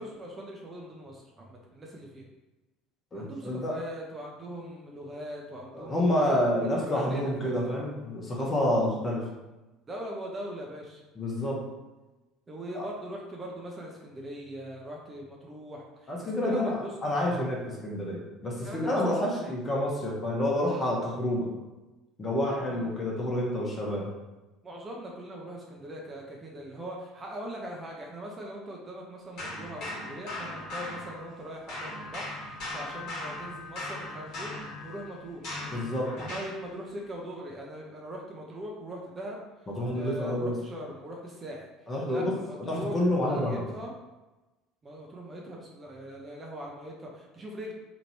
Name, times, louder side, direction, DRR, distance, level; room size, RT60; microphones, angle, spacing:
voice 1, 0.0-2.3 3.1-6.1 6.6-7.7 9.9-11.0 12.5-16.9 18.6-19.0 19.2-19.5 22.7-23.0 24.6-35.4 36.2-39.7 39.9-41.7 42.1-43.9 44.8-47.7, right 1 dB, 25° right, -1 dB, 0.6 m, -41 dB
voice 2, 3.1-3.8 5.7-9.2 11.2-11.6 12.7-12.9 16.1-21.5 22.2-24.1 35.7-36.1 39.8-40.5 41.9-42.3 42.6-43.6, left 1 dB, 25° left, -3 dB, 1.0 m, -28 dB
sound 1, 29.4-31.4 31.7-36.6, left 2 dB, 50° left, 1.2 m, -38 dB
2.9 x 2.5 x 3.0 m, 1.1 s
figure-of-eight pair, 65°, 0 cm